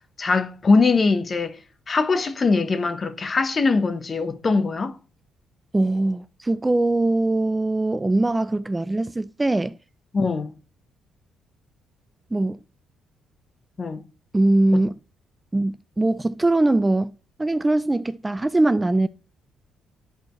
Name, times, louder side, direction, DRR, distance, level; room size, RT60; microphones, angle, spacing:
voice 1, 0.2-1.6 1.9-5.0 10.1-10.5 13.8-14.0, left 4 dB, 35° left, 1.0 m, -21 dB
voice 2, 5.7-9.8 12.3-12.6 14.3-15.0 15.5-19.1, right 2 dB, 15° right, 0.4 m, -21 dB
11.0 x 4.4 x 3.1 m
cardioid pair, 90°, 0 cm